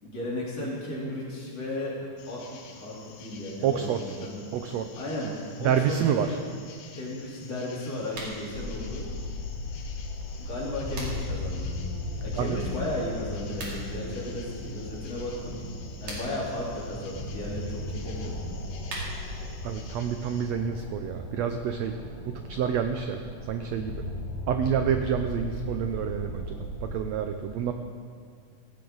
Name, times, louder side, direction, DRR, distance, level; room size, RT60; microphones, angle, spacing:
voice 1, 0.0-4.4 5.0-5.3 5.6-6.0 6.2-6.4 7.0-9.0 10.2-11.7 12.2-15.6 16.0-18.6, left 1 dB, 50° left, -7 dB, 4.7 m, -35 dB
sound 1, 2.2-20.5, left 5 dB, 85° left, 2.9 m, -50 dB
voice 2, 3.6-4.0 4.5-4.9 5.6-6.4 12.4-12.6 19.6-22.0 22.3-23.2 23.5-24.0 24.5-27.7, right 8 dB, 80° right, 7 dB, 1.5 m, -28 dB
sound 2, 8.1-8.4 10.4-11.4 13.4-13.8 15.8-16.5 18.5-19.4, right 1 dB, 55° right, 4.0 m, -39 dB
sound 3, 8.5-27.0, left 1 dB, 70° left, 3.3 m, -37 dB
17.0 x 15.5 x 4.0 m, 2.1 s
omnidirectional pair, 3.8 m